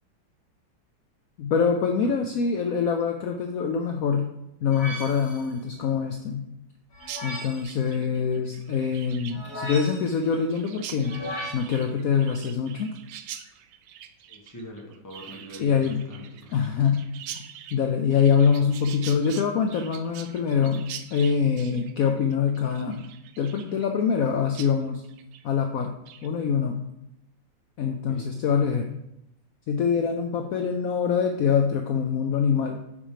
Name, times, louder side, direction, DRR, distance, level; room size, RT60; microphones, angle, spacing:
voice 1, 1.4-4.3 4.6-6.4 7.2-11.2 11.5-12.9 15.6-16.0 16.5-17.0 17.3-17.4 17.7-20.9 21.1-23.0 23.4-25.0 25.4-26.0 26.2-26.8 27.8-28.9 29.7-32.8, left 6 dB, 75° left, 4 dB, 0.8 m, -24 dB
voice 2, 2.0-2.4 14.3-16.6 28.1-28.3, equal, 10° left, -1 dB, 1.1 m, -43 dB
sound 1, 4.7-5.5 6.9-7.7 9.3-10.2 11.0-11.5, equal, 40° left, 1.2 m, -36 dB
Chirp tweet, 7.0-24.3 24.5-24.7 25.0-25.4 25.8-26.3, right 10 dB, 80° right, 1.3 m, -44 dB
7.2 x 5.3 x 4.9 m, 0.83 s
omnidirectional pair, 2.2 m